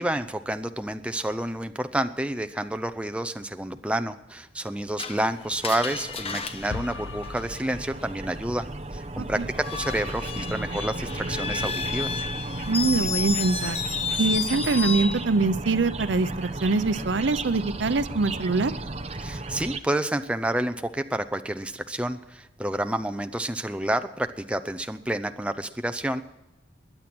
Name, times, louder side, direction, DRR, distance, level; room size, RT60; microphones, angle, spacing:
voice 1, 0.0-8.7 8.9-12.2 19.2-26.2, right 1 dB, 5° right, 8 dB, 0.6 m, -29 dB
Screech, 5.0-7.9 9.5-15.2, left 5 dB, 30° left, 1.0 m, -32 dB
sound 1, 5.2-19.8, right 2 dB, 35° right, 0.8 m, -35 dB
sound 2, 6.7-8.7, left 4 dB, 70° left, 0.5 m, -40 dB
voice 2, 12.7-13.8 14.2-18.7, right 3 dB, 75° right, 15 dB, 0.6 m, -24 dB
21.5 x 8.9 x 6.1 m, 0.95 s
head